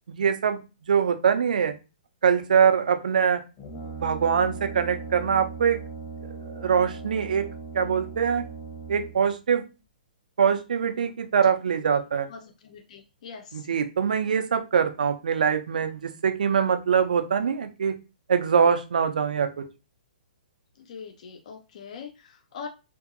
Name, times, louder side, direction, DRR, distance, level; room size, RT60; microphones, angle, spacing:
voice 1, 0.1-1.7 2.2-3.4 4.0-5.8 6.2-7.5 7.7-8.4 8.9-9.6 10.4-12.3 13.5-17.9 18.3-19.6, right 7 dB, 60° right, 8 dB, 0.4 m, -23 dB
Brass instrument, 3.6-9.3, right 4 dB, 30° left, 0.9 m, -38 dB
voice 2, 12.3-13.7 20.8-22.7, left 6 dB, 50° left, 5 dB, 0.4 m, -42 dB
2.6 x 2.5 x 2.5 m, 0.29 s
figure-of-eight pair, 120°, 5 cm